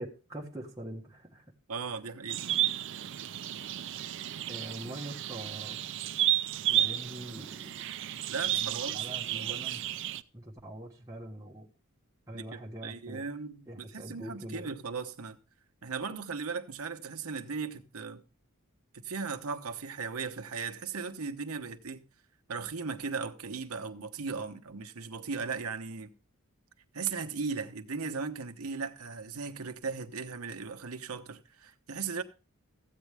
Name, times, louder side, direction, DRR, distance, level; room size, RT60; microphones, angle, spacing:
voice 1, 0.0-1.4 4.5-5.8 6.7-7.8 8.5-10.0 10.3-11.7 12.3-13.3 13.7-14.7, right 1 dB, 15° right, 1.4 m, -43 dB
voice 2, 1.7-2.5 8.3-9.1 9.3-9.9 12.3-15.4 15.8-18.2 18.9-22.0 22.5-26.1 26.9-32.2, right 5 dB, 85° right, 1.0 m, -37 dB
sound 1, 2.3-10.2, right 12 dB, 60° right, 0.5 m, -32 dB
14.5 x 8.3 x 3.4 m
head